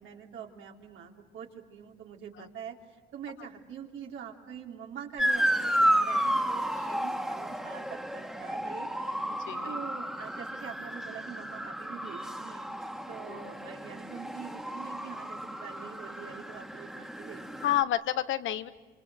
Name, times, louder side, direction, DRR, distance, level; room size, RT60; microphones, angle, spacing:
voice 1, 0.0-2.8 3.1-9.2 9.6-17.8, right 8 dB, 80° right, 1 dB, 3.3 m, -45 dB
Motor vehicle (road) / Siren, 5.2-17.8, equal, 5° right, 1.8 m, -32 dB
voice 2, 9.3-9.8 13.3-13.4 17.6-18.7, left 12 dB, 75° left, 12 dB, 1.2 m, -30 dB
27.5 x 26.5 x 7.8 m, 1.3 s
cardioid pair, 90°, 20 cm